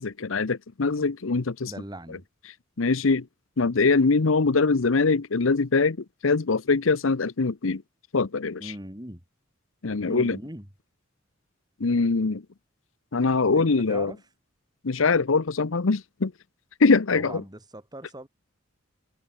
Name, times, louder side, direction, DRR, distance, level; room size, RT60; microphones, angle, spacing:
voice 1, 0.0-1.7 2.8-3.3 3.6-7.8 8.1-8.7 9.8-10.4 11.8-12.4 13.1-14.1 14.8-16.3 16.8-17.4, left 4 dB, 85° left, 0.8 m, -23 dB
voice 2, 1.6-2.2 8.6-9.2 10.0-10.7 13.5-14.2 17.1-18.3, right 1 dB, 20° right, 4.4 m, -40 dB
head